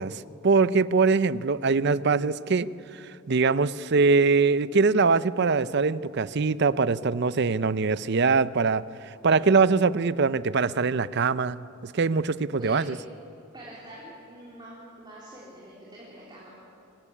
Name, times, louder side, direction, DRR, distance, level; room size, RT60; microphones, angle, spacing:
voice 1, 0.0-2.7 2.9-8.8 9.2-12.9, right 4 dB, 50° right, 17 dB, 0.5 m, -23 dB
voice 2, 13.5-16.5, right 1 dB, 20° right, -5 dB, 3.7 m, -45 dB
24.5 x 17.0 x 9.8 m, 2.8 s
head